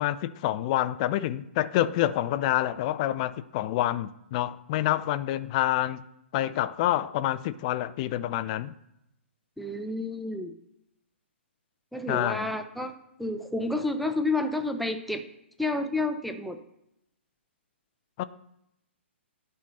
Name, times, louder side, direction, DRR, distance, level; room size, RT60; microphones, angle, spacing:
voice 1, 0.0-6.0 6.3-8.7 12.1-12.5 18.2-18.3, left 13 dB, 35° left, 15 dB, 0.5 m, -27 dB
voice 2, 9.6-10.5 11.9-15.2 15.6-16.6, left 2 dB, ahead, 6 dB, 0.7 m, -30 dB
10.5 x 5.6 x 6.4 m, 0.82 s
figure-of-eight pair, 130°, 7 cm